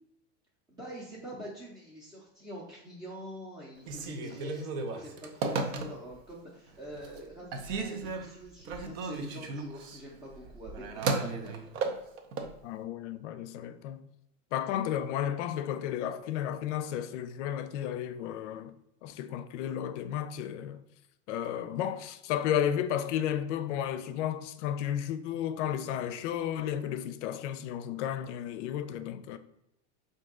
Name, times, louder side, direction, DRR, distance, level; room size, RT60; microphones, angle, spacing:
voice 1, 0.7-11.6 14.6-14.7, right 1 dB, 10° right, 0.6 m, -45 dB
Telephone, 3.8-6.3 6.7-7.2 7.5-12.5, right 3 dB, 55° right, 0.7 m, -35 dB
voice 2, 12.6-14.0 14.5-18.7 19.0-20.8 21.3-29.4, left 10 dB, 70° left, 0.5 m, -33 dB
3.7 x 2.7 x 3.6 m
supercardioid pair, 125°, 37 cm